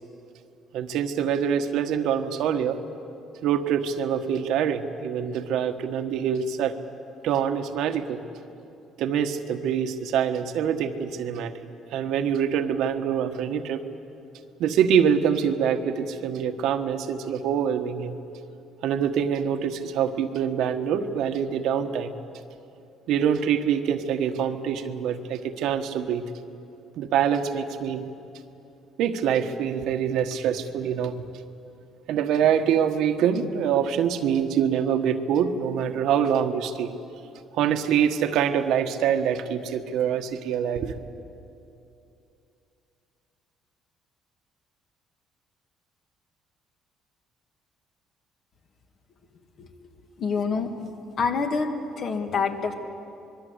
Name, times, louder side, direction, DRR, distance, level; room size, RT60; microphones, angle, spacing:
voice 1, 0.7-2.8 3.4-6.8 7.2-8.2 9.0-11.6 11.9-13.8 14.6-18.2 18.8-22.1 23.1-26.2 27.0-28.0 29.0-31.1 32.1-36.9 37.6-40.9, right 8 dB, 75° right, 7 dB, 1.4 m, -25 dB
voice 2, 50.2-50.7 51.2-51.7 52.0-52.7, left 5 dB, 45° left, 5 dB, 2.2 m, -26 dB
25.5 x 22.0 x 8.2 m, 2.8 s
cardioid pair, 140°, 0 cm